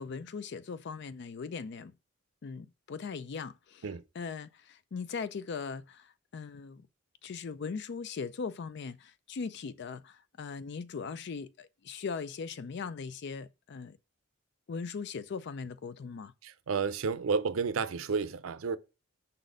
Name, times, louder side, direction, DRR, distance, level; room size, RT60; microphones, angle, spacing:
voice 1, 0.0-1.9 2.4-3.9 4.1-6.9 7.2-14.0 14.7-16.3, left 5 dB, 55° left, 0.4 m, -39 dB
voice 2, 16.4-18.8, right 5 dB, 85° right, 0.5 m, -31 dB
5.5 x 4.1 x 5.0 m
head